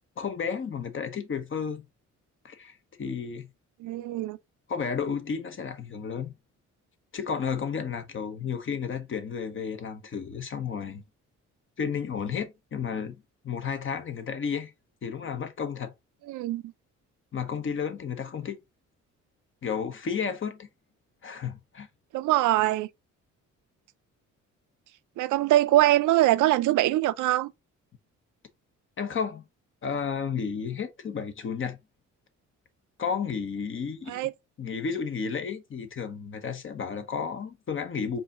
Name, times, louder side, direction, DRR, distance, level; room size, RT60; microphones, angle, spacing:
voice 1, 0.2-1.8 2.4-3.5 4.7-6.3 7.1-11.0 11.8-13.1 13.4-14.7 15.0-15.9 17.3-18.6 19.6-20.7 21.2-21.9 29.0-29.4 29.8-31.8 33.0-34.3 34.6-38.2, left 6 dB, 40° left, 0.9 m, -32 dB
voice 2, 3.8-4.4 16.3-16.7 22.1-22.9 25.2-27.5 34.1-34.3, right 15 dB, 80° right, 0.5 m, -23 dB
4.8 x 2.7 x 2.8 m
cardioid pair, 90°, 30 cm